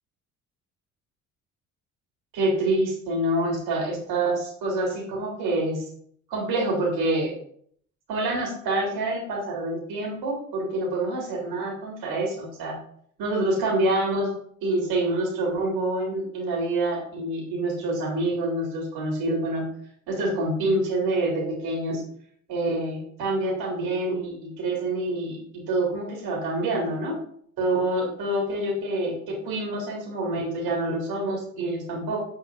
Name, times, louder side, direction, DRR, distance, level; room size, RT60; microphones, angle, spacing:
voice 1, 2.3-5.8 6.3-7.4 8.1-12.8 13.2-14.3 14.6-19.7 20.1-22.0 22.5-27.2 27.6-32.2, right 2 dB, 60° right, -2 dB, 3.9 m, -26 dB
13.0 x 5.8 x 2.7 m, 0.62 s
figure-of-eight pair, 50°, 42 cm